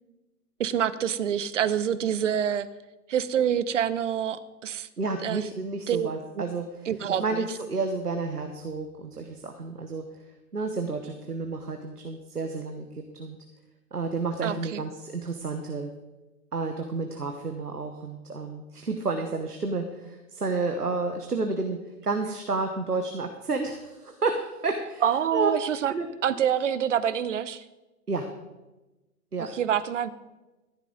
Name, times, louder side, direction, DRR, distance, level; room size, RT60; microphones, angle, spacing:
voice 1, 0.6-2.7 3.1-4.9 5.2-5.4 5.9-6.1 6.9-7.5 14.4-14.8 25.0-25.9 26.2-27.6 29.4-30.1, right 9 dB, 55° right, 16 dB, 0.8 m, -26 dB
voice 2, 5.0-10.0 10.5-13.4 13.9-15.9 16.5-25.0 25.3-25.5 25.9-26.1 28.1-28.3 29.3-29.5, right 3 dB, 85° right, 6 dB, 1.2 m, -31 dB
14.0 x 11.5 x 3.9 m, 1.1 s
figure-of-eight pair, 115°, 45 cm